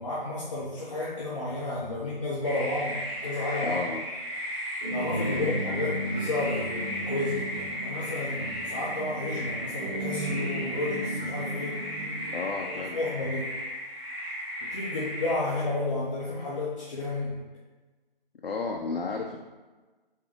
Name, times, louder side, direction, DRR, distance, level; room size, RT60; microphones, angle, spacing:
voice 1, 0.0-3.8 4.9-11.8 12.7-13.5 14.6-17.3, left 2 dB, 35° left, -8 dB, 0.6 m, -32 dB
sound 1, 2.4-15.3, equal, 5° right, 0.9 m, -35 dB
voice 2, 3.6-4.0 5.3-5.5 12.3-13.0 18.4-19.4, left 4 dB, 70° left, 1 dB, 0.5 m, -33 dB
sound 2, 4.8-12.3, right 1 dB, 55° right, 1.2 m, -35 dB
3.4 x 3.2 x 3.0 m, 1.3 s
figure-of-eight pair, 155°, 29 cm